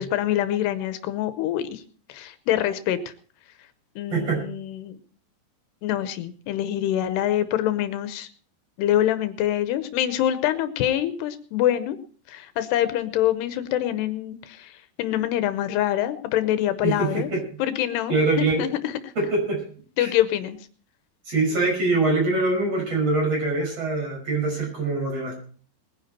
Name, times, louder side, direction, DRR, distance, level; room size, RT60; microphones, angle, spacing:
voice 1, 0.0-1.8 2.1-3.1 4.0-5.0 5.8-8.3 8.8-12.0 12.3-17.3 17.6-19.1 20.0-20.6, left 12 dB, 80° left, 11 dB, 2.9 m, -25 dB
voice 2, 4.1-4.4 16.8-17.4 18.1-18.6 19.2-19.6 20.0-20.1 21.3-25.3, right 3 dB, 35° right, 0 dB, 6.4 m, -23 dB
20.5 x 10.5 x 4.3 m, 0.43 s
omnidirectional pair, 4.9 m